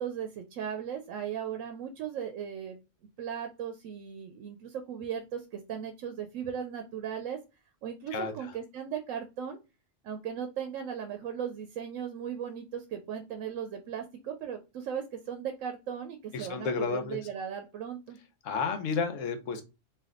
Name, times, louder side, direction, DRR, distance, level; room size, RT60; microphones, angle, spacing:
voice 1, 0.0-2.8 3.2-7.4 7.8-9.6 10.0-18.2, right 8 dB, 85° right, 6 dB, 1.0 m, -37 dB
voice 2, 8.1-8.5 16.3-17.2 18.4-19.6, left 5 dB, 85° left, 7 dB, 1.1 m, -31 dB
3.4 x 2.5 x 3.6 m, 0.28 s
omnidirectional pair, 1.3 m